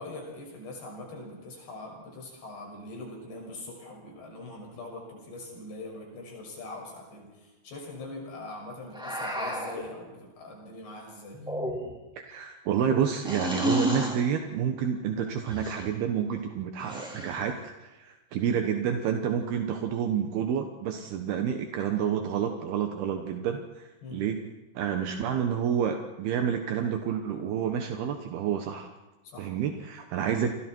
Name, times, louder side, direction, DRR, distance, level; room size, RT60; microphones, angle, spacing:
voice 1, 0.0-11.4 24.0-24.2 29.2-29.5 30.3-30.4, left 2 dB, 85° left, 0 dB, 8.5 m, -42 dB
sound 1, 8.9-9.8 11.3-12.1 13.2-14.2 15.5-15.9 16.8-17.5, equal, ahead, 3.9 m, -31 dB
voice 2, 12.3-24.4 24.8-28.9 29.4-30.5, right 8 dB, 75° right, 5 dB, 3.0 m, -29 dB
30.0 x 24.0 x 4.6 m, 1.1 s
omnidirectional pair, 4.7 m